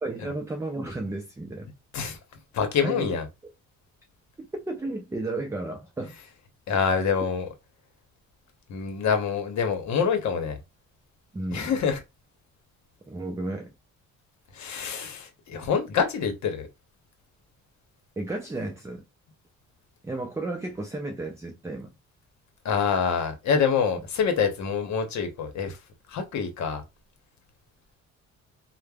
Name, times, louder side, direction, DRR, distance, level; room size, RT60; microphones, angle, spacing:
voice 1, 0.0-1.7 2.8-3.1 4.4-6.1 11.3-11.7 13.1-13.7 18.2-19.1 20.0-22.0, right 2 dB, 10° right, 0.4 m, -33 dB
voice 2, 2.5-3.3 6.7-7.5 8.7-10.6 11.5-12.0 14.5-16.7 22.6-25.8 26.1-26.8, left 6 dB, 65° left, 0.8 m, -26 dB
3.2 x 2.1 x 2.2 m
cardioid pair, 90°, 30 cm